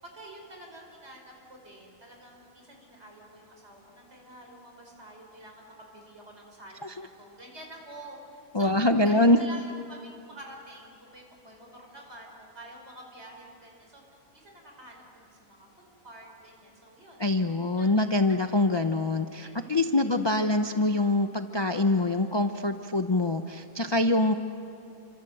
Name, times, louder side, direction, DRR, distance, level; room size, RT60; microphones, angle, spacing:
voice 1, 0.0-14.0 14.3-15.7 16.0-17.2 17.8-17.9 18.5-18.6 19.4-19.6 20.0-20.5, right 1 dB, 50° right, 1 dB, 5.6 m, -48 dB
voice 2, 8.5-9.4 17.2-24.3, left 2 dB, 25° left, 6 dB, 0.7 m, -24 dB
29.0 x 25.5 x 7.9 m, 2.8 s
omnidirectional pair, 1.5 m